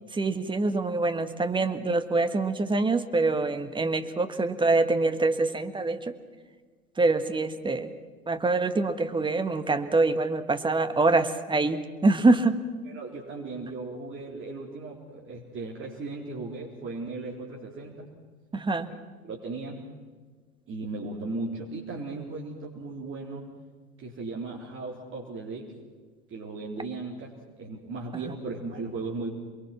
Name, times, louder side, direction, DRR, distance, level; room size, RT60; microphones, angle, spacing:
voice 1, 0.1-6.1 7.0-7.9 8.3-12.5 18.5-18.9, right 3 dB, 10° right, 9 dB, 1.5 m, -25 dB
voice 2, 12.8-18.1 19.2-19.8 20.7-23.5 24.0-25.7 26.3-29.3, right 3 dB, 25° right, -3 dB, 4.0 m, -37 dB
28.0 x 22.5 x 6.0 m, 1.5 s
figure-of-eight pair, 85°, 44 cm